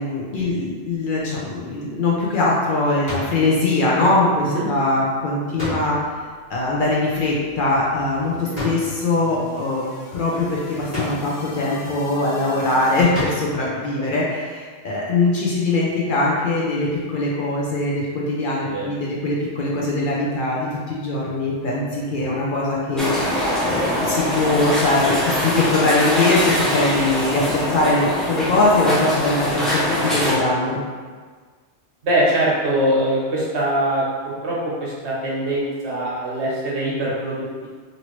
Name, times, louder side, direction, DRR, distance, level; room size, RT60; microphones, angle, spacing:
voice 1, 0.0-6.0 6.5-9.9 10.1-30.8, left 2 dB, 55° left, -5 dB, 0.6 m, -21 dB
sound 1, 3.1-3.5 5.6-6.2 8.5-9.1 10.9-11.5 13.1-13.7, left 1 dB, 35° left, 1.3 m, -29 dB
sound 2, 6.9-13.0, left 1 dB, 80° left, 1.0 m, -41 dB
voice 2, 13.6-14.1 18.6-18.9 32.0-37.7, right 1 dB, 75° right, -5 dB, 1.1 m, -23 dB
sound 3, 23.0-30.3, left 1 dB, ahead, 0.4 m, -23 dB
3.0 x 2.6 x 3.0 m, 1.5 s
omnidirectional pair, 1.2 m